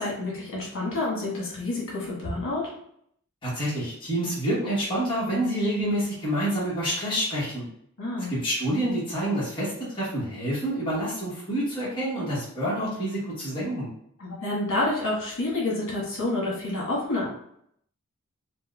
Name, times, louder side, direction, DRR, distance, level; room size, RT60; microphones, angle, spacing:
voice 1, 0.0-2.7 8.0-8.3 14.2-17.3, left 2 dB, 60° left, -5 dB, 1.3 m, -28 dB
voice 2, 3.4-7.7 8.3-13.9, right 1 dB, 25° left, -8 dB, 1.0 m, -28 dB
4.2 x 2.1 x 2.3 m, 0.69 s
head